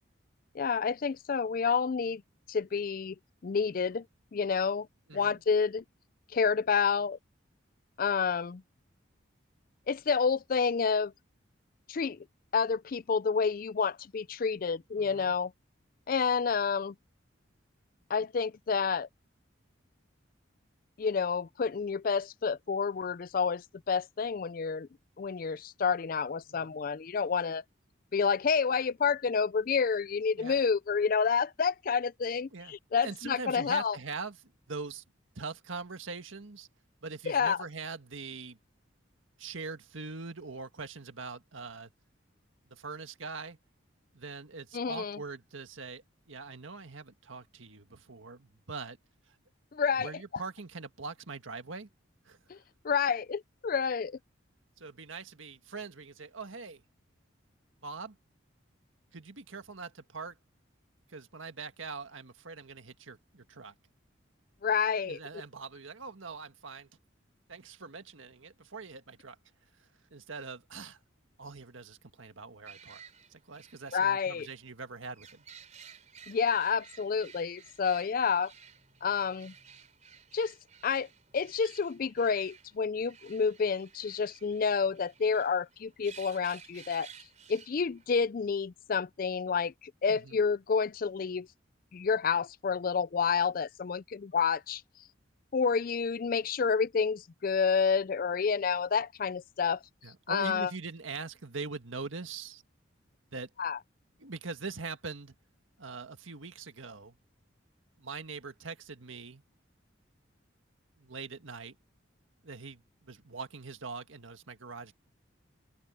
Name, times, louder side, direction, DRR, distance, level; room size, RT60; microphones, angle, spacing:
voice 1, 0.5-2.2 2.5-3.2 3.4-4.0 4.3-4.9 5.1-5.8 6.3-7.2 8.0-8.6 9.9-11.1 11.9-12.2 12.5-15.5 16.1-16.9 18.1-19.1 21.0-24.9 25.2-27.6 28.1-34.0 37.3-37.6 44.7-45.2 49.7-50.1 52.5-52.6 52.8-54.2 64.6-65.2 73.9-74.5 76.3-78.5 79.0-79.5 80.3-80.5 80.8-81.1 81.3-87.1 87.5-89.7 90.0-91.5 91.9-94.8 95.5-99.8 100.3-100.7 103.6-103.8, left 5 dB, 45° left, 0.4 m, -29 dB
voice 2, 5.1-5.4 15.0-15.3 26.5-26.8 30.4-30.6 32.5-32.8 33.0-35.0 35.3-36.7 37.0-38.6 39.4-41.9 42.7-43.6 44.1-49.0 49.3-49.4 49.9-51.9 52.2-52.4 54.8-56.8 57.8-58.2 59.1-60.4 61.1-63.7 65.0-66.9 67.5-69.4 70.1-71.0 71.4-73.0 73.3-75.4 90.1-90.4 100.0-102.6 103.3-103.5 104.2-105.3 105.8-107.2 108.0-109.4 111.0-111.7 112.4-115.0, right 4 dB, 80° right, 1.7 m, -42 dB
sound 1, 72.7-88.1, right 7 dB, 35° right, 4.1 m, -55 dB
open air
head